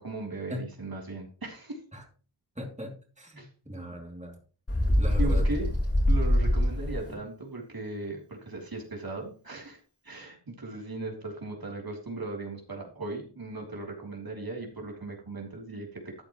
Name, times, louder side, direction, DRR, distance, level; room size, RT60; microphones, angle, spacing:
voice 1, 0.0-1.8 3.3-3.5 5.2-5.7 6.0-9.8 10.0-16.2, right 2 dB, 60° right, 0 dB, 3.3 m, -37 dB
voice 2, 2.6-4.4 5.0-5.4 7.1-7.2, left 1 dB, 15° right, 1 dB, 2.7 m, -39 dB
Bird, 4.7-7.1, left 1 dB, 35° left, 4.0 m, -24 dB
13.0 x 8.8 x 3.1 m, 0.38 s
wide cardioid pair, 60°, 41 cm